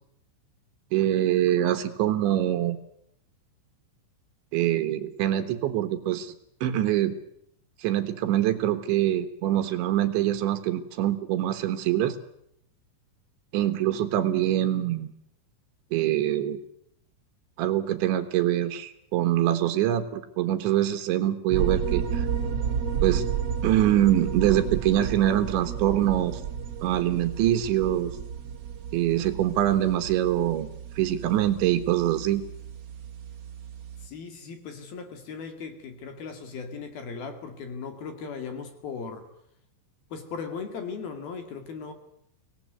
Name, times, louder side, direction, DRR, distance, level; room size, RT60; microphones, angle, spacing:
voice 1, 0.9-2.8 4.5-6.4 6.6-7.1 7.8-12.2 13.5-15.1 15.9-16.6 17.6-22.3 23.0-23.2 23.6-26.4 26.8-28.2 28.9-32.4, right 12 dB, 70° right, 3.4 m, -24 dB
sound 1, 21.5-34.1, right 8 dB, 40° right, 2.7 m, -32 dB
voice 2, 34.0-39.3 40.1-41.9, left 5 dB, 55° left, 3.7 m, -37 dB
24.5 x 18.5 x 9.4 m
omnidirectional pair, 5.7 m